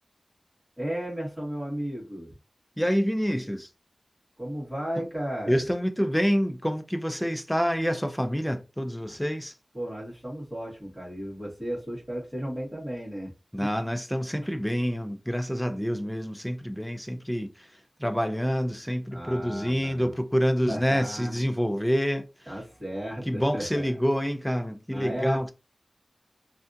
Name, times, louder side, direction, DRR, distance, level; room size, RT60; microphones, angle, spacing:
voice 1, 0.8-2.4 4.4-5.6 9.7-13.3 13.6-13.7 19.1-20.1 20.7-21.5 22.5-23.8 24.9-25.4, equal, 15° right, 1.9 m, -34 dB
voice 2, 2.8-3.7 5.0-5.1 5.5-9.5 13.5-17.7 18.0-22.5 23.3-25.5, equal, 5° left, 0.5 m, -27 dB
3.3 x 2.5 x 2.6 m
wide cardioid pair, 80°, 0 cm